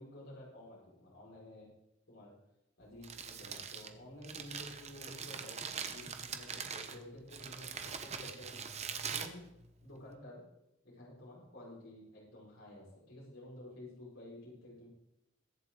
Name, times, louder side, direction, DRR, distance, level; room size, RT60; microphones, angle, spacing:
voice 1, 0.0-1.7 2.1-2.3 2.8-5.6 5.9-8.6 9.1-9.5 9.8-10.4 10.8-14.9, left 1 dB, 75° left, -6 dB, 5.0 m, -52 dB
Crumpling crinkling, 2.8-10.1, right 6 dB, 30° right, 1.0 m, -43 dB
22.5 x 7.6 x 3.8 m, 0.88 s
head